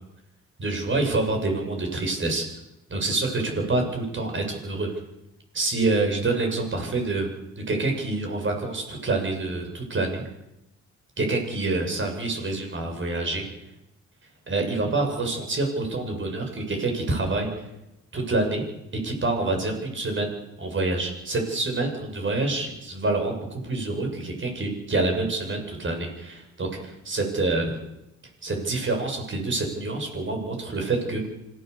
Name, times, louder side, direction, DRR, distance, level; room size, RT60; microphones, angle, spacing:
voice 1, 0.6-2.5 2.9-4.9 5.5-7.3 7.6-10.2 11.2-13.5 14.5-17.7 18.1-18.6 19.0-27.8 28.4-31.2, right 2 dB, 40° right, 3 dB, 7.9 m, -27 dB
26.0 x 17.5 x 7.1 m, 0.89 s
cardioid pair, 90°, 30 cm